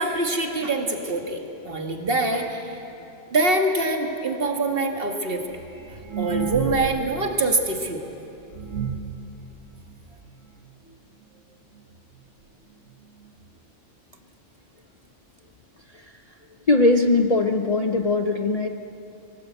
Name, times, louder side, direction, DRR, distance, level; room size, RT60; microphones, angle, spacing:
voice 1, 0.0-2.6 3.3-5.4 5.9-8.0, right 2 dB, 50° right, 3 dB, 2.0 m, -24 dB
sound 1, 5.5-7.1 7.4-7.5 8.1-8.2 8.5-9.2 9.9-10.0 10.3-10.4 10.7-11.0 11.8-11.9 12.2-12.3 12.9-13.0 13.2-13.3, right 7 dB, 80° right, 1.5 m, -30 dB
voice 2, 16.7-18.7, left 2 dB, 40° left, 5 dB, 0.7 m, -20 dB
22.5 x 17.5 x 8.1 m, 2.8 s
omnidirectional pair, 1.3 m